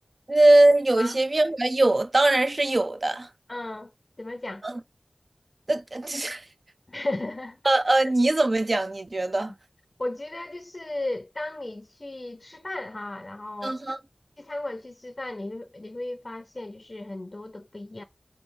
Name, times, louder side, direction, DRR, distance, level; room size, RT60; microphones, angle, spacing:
voice 1, 0.3-3.3 4.6-4.8 5.7-6.4 7.6-9.5 13.6-14.0, right 2 dB, 60° right, 0.5 m, -21 dB
voice 2, 3.5-3.9 4.2-4.6 6.9-7.6 8.0-8.1 10.0-13.8 14.4-18.0, left 2 dB, 55° left, 0.5 m, -35 dB
3.8 x 3.1 x 3.6 m
wide cardioid pair, 40°, 0 cm